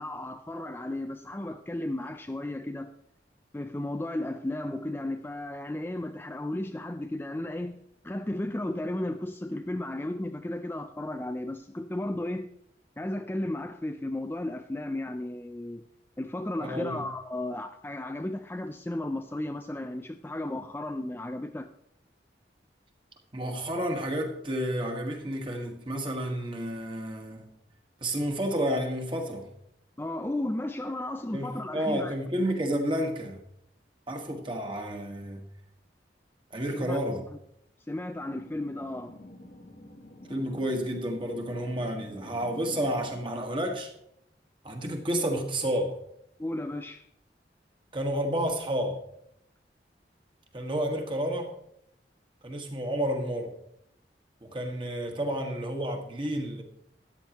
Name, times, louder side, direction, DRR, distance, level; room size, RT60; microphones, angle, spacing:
voice 1, 0.0-2.9 3.5-7.8 8.0-12.5 13.0-15.9 16.2-21.7 30.0-32.1 36.7-37.0 37.9-39.2 46.4-47.0, left 1 dB, 10° left, 0.4 m, -34 dB
voice 2, 16.6-17.0 23.3-27.5 28.0-29.5 31.3-33.4 34.1-35.4 36.5-37.2 40.3-43.9 44.6-46.0 47.9-49.0 50.5-51.5 52.4-53.5 54.4-56.6, equal, 30° right, 1.6 m, -30 dB
sound 1, 38.2-43.3, left 1 dB, 55° left, 1.1 m, -47 dB
13.5 x 10.0 x 3.0 m
head